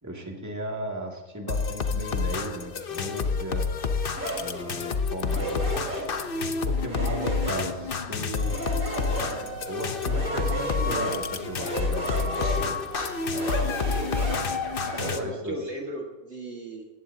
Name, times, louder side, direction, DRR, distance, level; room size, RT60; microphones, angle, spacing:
voice 1, 0.0-3.7 4.4-5.8 6.6-8.6 9.7-12.8 15.1-15.6, right 1 dB, 10° right, -1 dB, 2.2 m, -36 dB
sound 1, 1.5-15.2, left 5 dB, 45° left, 0.9 m, -29 dB
sound 2, 4.1-15.1, right 2 dB, 70° right, 4.7 m, -34 dB
Wind instrument woodwind instrument, 8.4-15.2, left 2 dB, 10° left, 1.6 m, -38 dB
voice 2, 13.5-14.3 14.8-16.9, right 1 dB, 50° right, 0 dB, 2.0 m, -37 dB
18.5 x 17.0 x 2.8 m, 1.2 s
omnidirectional pair, 1.5 m